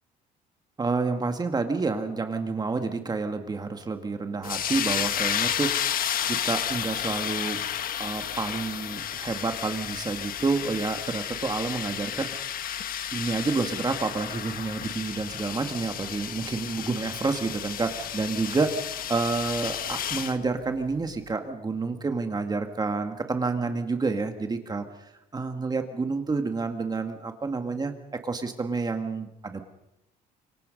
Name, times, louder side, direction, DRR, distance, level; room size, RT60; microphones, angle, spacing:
voice 1, 0.8-7.6 8.0-12.3 13.1-24.9 25.3-27.9 28.2-29.6, right 4 dB, 25° right, 6 dB, 2.0 m, -29 dB
sound 1, 4.4-20.4, left 10 dB, 60° left, 1.4 m, -32 dB
26.5 x 23.5 x 5.4 m, 0.85 s
cardioid pair, 110°, 17 cm